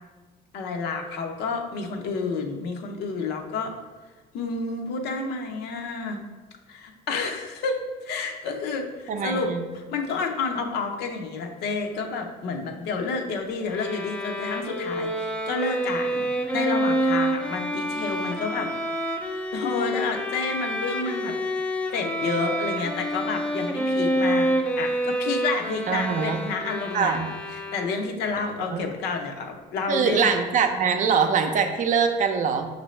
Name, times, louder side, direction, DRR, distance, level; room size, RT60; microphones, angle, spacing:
voice 1, 0.5-3.7 4.3-6.2 6.7-18.7 19.5-21.3 21.9-24.5 24.8-27.2 27.5-30.3, left 4 dB, 80° left, 3 dB, 0.7 m, -30 dB
voice 2, 9.1-9.6 25.9-26.4 26.9-27.3 28.7-28.9 29.9-32.7, right 6 dB, 50° right, 6 dB, 0.5 m, -23 dB
Bowed string instrument, 13.7-28.2, right 1 dB, 5° left, 0.4 m, -28 dB
6.0 x 2.6 x 3.1 m, 1.3 s
cardioid pair, 110°, 17 cm